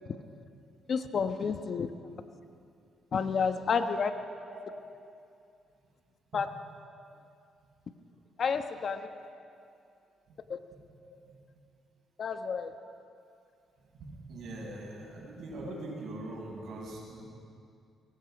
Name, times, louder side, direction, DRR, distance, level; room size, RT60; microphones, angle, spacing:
voice 1, 0.9-1.9 3.1-4.1 6.3-6.5 8.4-9.0 10.5-10.6 12.2-12.7, left 6 dB, 50° left, 8 dB, 1.1 m, -30 dB
voice 2, 13.9-17.3, right 2 dB, 70° right, -2 dB, 7.3 m, -42 dB
23.5 x 21.5 x 5.2 m, 2.4 s
cardioid pair, 90°, 0 cm